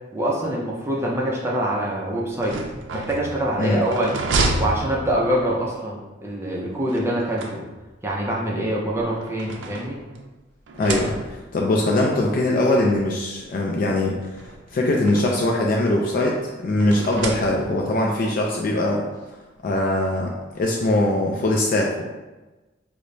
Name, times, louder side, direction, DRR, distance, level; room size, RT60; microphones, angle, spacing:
voice 1, 0.1-2.6 2.9-4.2 4.6-7.6 8.0-10.0, right 1 dB, 15° right, -3 dB, 0.5 m, -25 dB
sound 1, 2.3-5.6 6.9-8.1 8.9-10.3 10.7-11.6 12.5-12.6 13.0-13.1 14.2-15.6 16.8-18.0, right 3 dB, 85° right, 0.4 m, -30 dB
voice 2, 10.8-14.3 14.7-19.0 19.6-22.0, left 1 dB, 50° left, -1 dB, 0.4 m, -21 dB
4.8 x 2.1 x 2.6 m, 1.1 s
head